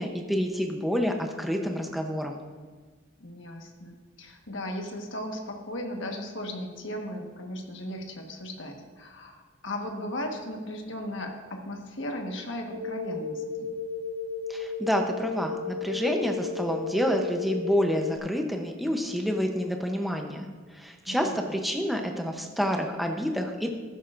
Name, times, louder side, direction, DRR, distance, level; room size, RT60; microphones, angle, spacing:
voice 1, 0.0-2.4 14.5-23.7, equal, ahead, 2 dB, 0.8 m, -28 dB
voice 2, 3.2-13.7 21.1-21.5, left 1 dB, 65° left, 2 dB, 1.5 m, -36 dB
sound 1, 12.7-18.2, left 4 dB, 85° right, 0.9 m, -34 dB
14.0 x 12.5 x 2.6 m, 1.4 s
head